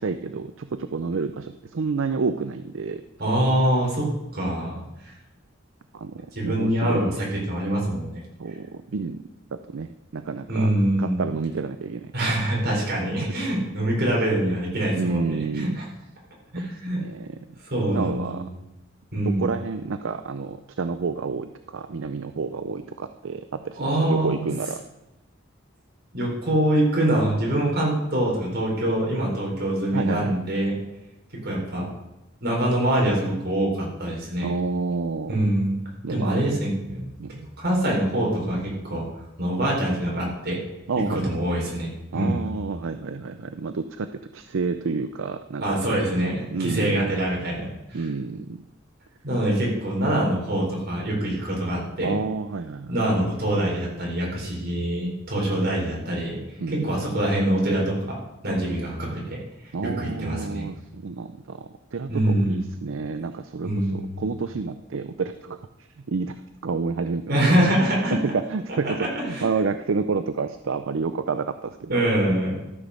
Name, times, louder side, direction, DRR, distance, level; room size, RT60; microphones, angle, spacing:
voice 1, 0.0-3.0 5.9-7.0 8.4-9.2 9.5-10.7 11.0-12.1 14.9-15.8 17.0-17.4 17.9-18.5 19.2-24.8 29.9-30.4 34.4-35.4 36.0-36.4 37.2-37.3 40.9-41.3 42.1-45.8 46.5-47.1 47.9-48.6 52.0-52.9 56.6-57.0 59.7-65.6 66.1-66.4 66.6-67.7 68.2-71.9, right 4 dB, 70° right, 10 dB, 0.5 m, -29 dB
voice 2, 3.2-4.1 4.3-5.1 6.3-8.2 10.5-11.2 12.1-15.8 16.5-17.0 17.7-18.4 19.1-19.5 23.8-24.5 26.1-30.7 31.4-31.9 32.4-34.5 35.3-35.7 36.1-39.0 39.4-40.6 41.1-41.9 42.1-42.5 45.6-48.1 49.2-52.1 52.9-56.4 56.7-58.2 58.4-59.4 60.0-60.7 62.1-62.6 63.6-64.3 67.3-68.2 68.8-69.5 71.9-72.6, right 1 dB, 50° right, -3 dB, 4.3 m, -24 dB
13.5 x 6.2 x 6.5 m, 0.96 s
head